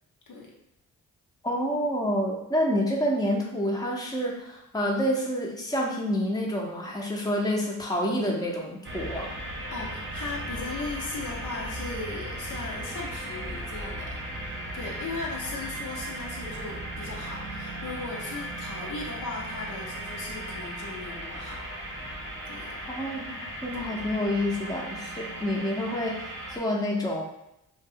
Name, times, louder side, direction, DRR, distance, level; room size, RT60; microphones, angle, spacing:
voice 1, 1.4-9.3 22.9-27.2, equal, 10° left, -2 dB, 0.7 m, -28 dB
sound 1, 8.8-26.6, right 1 dB, 35° right, 0.8 m, -37 dB
voice 2, 9.7-21.6 22.5-22.7, left 3 dB, 60° left, -2 dB, 0.8 m, -38 dB
2.4 x 2.2 x 3.6 m, 0.82 s
supercardioid pair, 50°, 35 cm